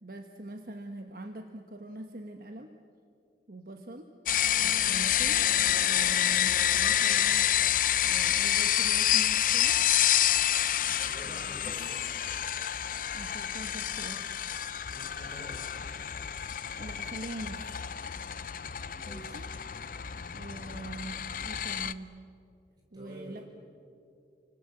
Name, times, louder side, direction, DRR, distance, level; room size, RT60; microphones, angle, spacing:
voice 1, 0.0-2.7 3.5-4.1 4.6-5.4 5.8-7.5 8.0-9.8 10.8-11.9 13.1-14.3 16.8-17.8 19.1-19.4 20.3-22.1 22.9-23.4, right 2 dB, 50° right, 5 dB, 1.2 m, -43 dB
sound 1, 4.3-21.9, left 11 dB, 50° left, 0.6 m, -28 dB
voice 2, 11.0-12.0 14.9-15.7 18.9-19.5 22.9-23.4, equal, 25° right, -1 dB, 6.0 m, -47 dB
30.0 x 25.0 x 7.8 m, 2.5 s
head